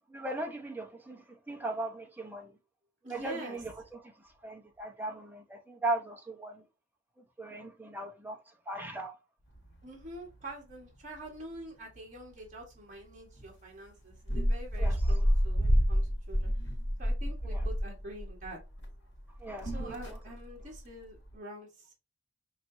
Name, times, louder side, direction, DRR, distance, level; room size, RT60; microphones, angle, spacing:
voice 1, 0.1-2.5 3.1-4.1 4.4-6.6 7.4-8.4 8.7-9.1 14.8-15.0 17.5-17.6 19.4-20.0, right 2 dB, 10° right, 1.0 m, -38 dB
voice 2, 3.0-3.6 9.8-16.5 17.0-18.6 19.6-21.9, right 1 dB, 40° right, 1.7 m, -46 dB
sound 1, 9.5-10.2 10.5-10.6 10.8-11.4 12.0-12.2 12.5-12.6 13.4-13.5 14.1-18.9 19.2-20.9 21.2-21.3, equal, 70° left, 1.5 m, -29 dB
5.9 x 2.9 x 2.7 m
head